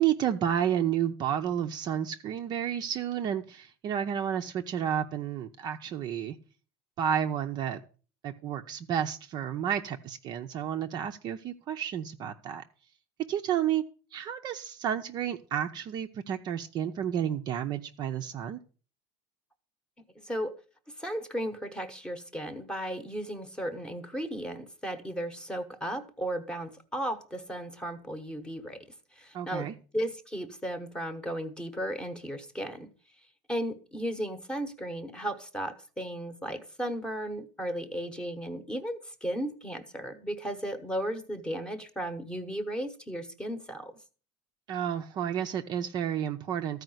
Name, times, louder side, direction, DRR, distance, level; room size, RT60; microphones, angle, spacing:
voice 1, 0.0-6.4 7.0-7.8 8.2-12.6 13.3-13.8 14.1-18.6 29.3-29.7 44.7-46.8, right 9 dB, 30° right, 0.6 m, -31 dB
voice 2, 20.1-20.5 21.0-28.8 29.2-29.7 29.9-32.9 33.5-43.9, equal, 5° left, 1.0 m, -35 dB
13.5 x 4.9 x 7.7 m
cardioid pair, 170°, 14 cm